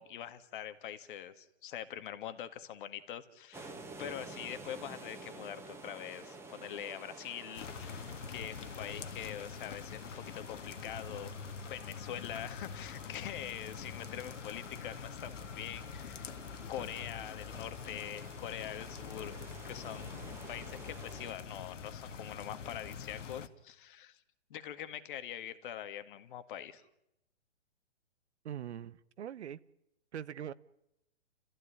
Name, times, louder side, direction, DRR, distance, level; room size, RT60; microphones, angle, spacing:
voice 1, 0.0-11.3 11.7-16.4 16.7-20.2 20.5-24.2 24.5-26.8, left 10 dB, 45° left, 11 dB, 1.8 m, -44 dB
sound 1, 3.5-21.3, right 3 dB, 5° right, 1.9 m, -52 dB
sound 2, 7.6-23.5, left 6 dB, 80° left, 1.9 m, -45 dB
voice 2, 28.4-29.6 30.1-30.5, right 9 dB, 65° right, 17 dB, 1.1 m, -42 dB
29.0 x 14.5 x 10.0 m, 0.86 s
hypercardioid pair, 150°, 37 cm